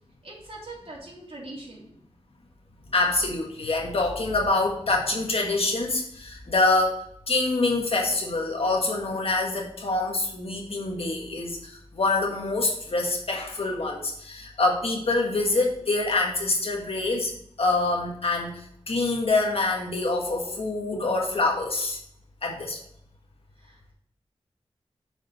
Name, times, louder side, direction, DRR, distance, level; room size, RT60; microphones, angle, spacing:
voice 1, 0.2-1.9 20.4-20.5 23.6-23.9, right 2 dB, 65° right, -5 dB, 2.9 m, -42 dB
voice 2, 2.9-7.0 7.3-17.3 17.6-22.0 22.4-22.8, left 2 dB, 70° left, 0 dB, 1.4 m, -25 dB
6.4 x 4.9 x 5.3 m, 0.68 s
wide cardioid pair, 90°, 10 cm